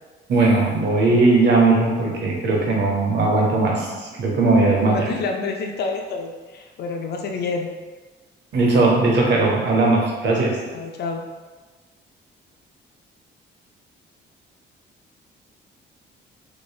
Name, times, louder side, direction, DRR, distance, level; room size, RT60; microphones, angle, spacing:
voice 1, 0.3-5.1 8.5-10.6, right 3 dB, 65° right, -1 dB, 0.8 m, -18 dB
voice 2, 4.8-7.7 10.7-11.2, left 4 dB, 55° left, 3 dB, 0.4 m, -28 dB
3.1 x 3.0 x 2.3 m, 1.3 s
cardioid pair, 90°, 20 cm